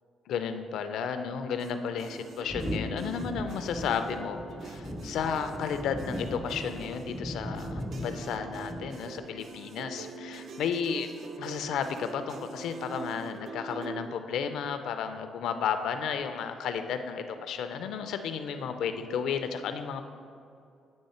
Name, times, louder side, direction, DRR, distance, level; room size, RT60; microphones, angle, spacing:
voice 1, 0.3-11.1 11.4-20.0, left 7 dB, 80° left, 8 dB, 0.4 m, -33 dB
sound 1, 1.6-14.1, right 3 dB, 60° right, 0.4 m, -44 dB
sound 2, 2.5-9.3, equal, ahead, 0.5 m, -38 dB
8.8 x 3.2 x 4.2 m, 2.4 s
cardioid pair, 90°, 0 cm